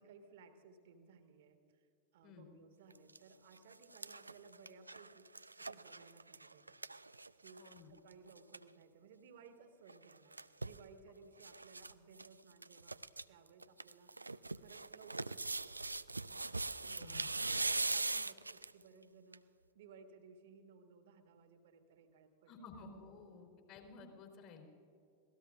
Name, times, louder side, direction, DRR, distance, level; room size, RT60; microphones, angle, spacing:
voice 1, 0.0-1.9 2.1-5.3 5.6-6.8 7.4-19.5 19.7-22.8, right 5 dB, 55° right, 7 dB, 1.6 m, -60 dB
sound 1, 2.9-3.2 3.6-7.8 8.1-8.2 8.4-8.6 9.9-10.8 11.4-11.9 12.2-12.3 12.6-13.2 13.6-18.8 19.3-19.4, right 3 dB, 80° right, 0.3 m, -41 dB
voice 2, 7.6-7.9 16.9-17.3 22.5-24.7, left 4 dB, 45° left, 2 dB, 3.7 m, -54 dB
26.0 x 18.0 x 2.6 m, 2.6 s
figure-of-eight pair, 90°, 0 cm